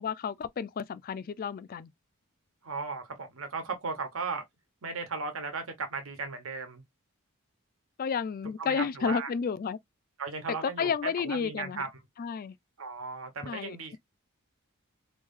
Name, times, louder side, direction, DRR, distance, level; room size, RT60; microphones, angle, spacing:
voice 1, 0.0-1.9 8.0-9.8 10.8-11.8 12.2-12.6 13.4-14.0, left 6 dB, 45° left, 0.3 m, -32 dB
voice 2, 2.6-4.4 4.8-6.8 8.6-9.3 10.2-11.9 12.8-14.0, right 4 dB, 70° right, 1.1 m, -36 dB
3.0 x 2.7 x 3.6 m
head